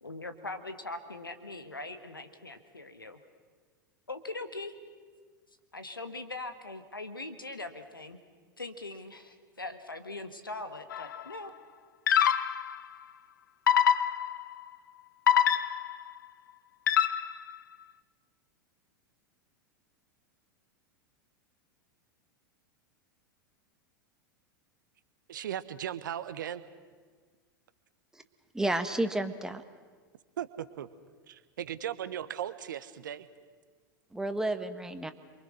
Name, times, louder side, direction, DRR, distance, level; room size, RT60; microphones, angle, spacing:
voice 1, 0.0-3.2 4.1-4.7 5.7-8.2 8.6-11.5, left 2 dB, 90° left, 8 dB, 1.5 m, -41 dB
sound 1, 10.9-11.2 12.1-12.8 13.7-14.5 15.3-16.1 16.9-17.5, left 9 dB, 70° left, 0.9 m, -25 dB
voice 2, 25.3-26.6 30.4-30.9 31.3-33.3, right 10 dB, 65° right, 13 dB, 1.2 m, -37 dB
voice 3, 28.5-29.6 34.1-35.1, right 1 dB, 5° right, 8 dB, 1.5 m, -31 dB
28.0 x 23.5 x 6.4 m, 1.5 s
figure-of-eight pair, 90°, 11 cm